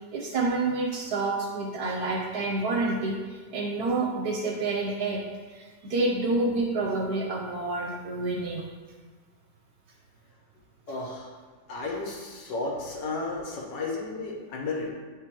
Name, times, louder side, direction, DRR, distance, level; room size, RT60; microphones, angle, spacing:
voice 1, 0.1-5.2 5.5-8.7, right 3 dB, 65° right, -1 dB, 1.0 m, -28 dB
voice 2, 10.9-11.3 11.7-14.9, left 3 dB, 70° left, -2 dB, 1.6 m, -33 dB
8.8 x 3.8 x 2.9 m, 1.5 s
omnidirectional pair, 2.1 m